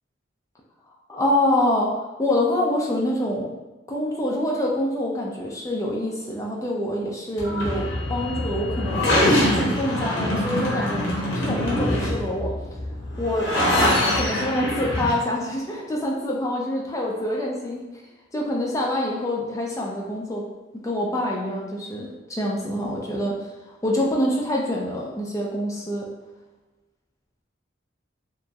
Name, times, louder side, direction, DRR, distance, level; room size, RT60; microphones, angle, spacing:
voice 1, 1.1-3.6 3.9-9.2 9.5-11.1 11.3-12.5 13.2-13.5 13.8-17.8 18.3-20.5 20.8-23.4 23.7-26.1, left 1 dB, 15° left, -2 dB, 0.3 m, -26 dB
sound 1, 7.4-15.1, left 1 dB, 75° left, 0.8 m, -24 dB
2.9 x 2.6 x 2.3 m, 1.1 s
head